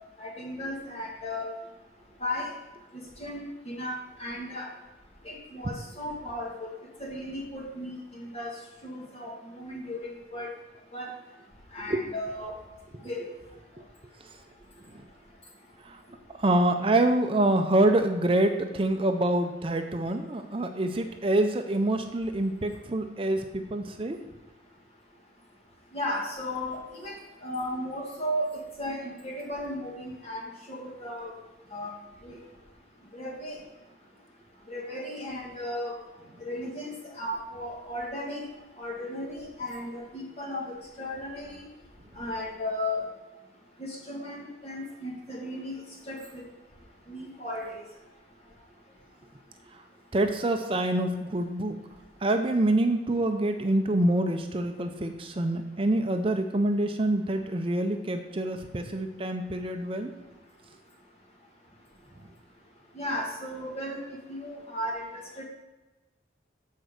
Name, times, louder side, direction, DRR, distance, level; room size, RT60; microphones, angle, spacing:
voice 1, 0.0-1.4 2.2-2.5 3.2-4.7 5.2-6.5 7.0-8.5 8.8-10.5 10.9-11.1 11.7-12.5 13.0-13.2 25.9-27.1 27.4-28.5 28.8-30.4 30.7-31.3 31.7-31.9 32.2-32.4 33.1-33.6 34.7-35.9 36.4-36.9 37.2-38.4 38.8-41.5 42.2-43.0 43.8-45.7 46.1-46.4 47.1-47.6 63.0-64.0 64.3-65.0 65.4-65.5, left 1 dB, 35° left, -2 dB, 1.5 m, -35 dB
voice 2, 16.4-24.2 50.1-51.8 52.2-60.1, right 1 dB, 30° right, 6 dB, 0.5 m, -26 dB
8.4 x 4.4 x 6.5 m, 1.1 s
head